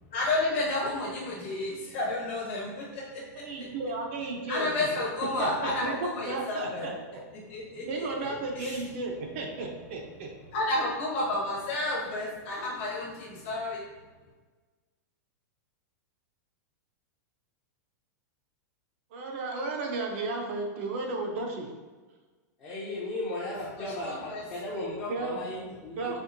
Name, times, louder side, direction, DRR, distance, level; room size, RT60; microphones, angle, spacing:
voice 1, 0.1-3.4 4.5-6.9 7.5-8.1 8.6-8.8 10.5-13.8 23.8-24.4, left 2 dB, 45° left, -4 dB, 1.2 m, -31 dB
voice 2, 3.4-4.9 5.4-7.2 7.9-10.3 19.1-21.7 25.1-25.4 26.0-26.2, right 3 dB, 45° right, 1 dB, 0.5 m, -34 dB
voice 3, 22.6-26.0, left 2 dB, 20° left, -7 dB, 0.6 m, -35 dB
4.4 x 3.0 x 2.5 m, 1.3 s
supercardioid pair, 170°, 10 cm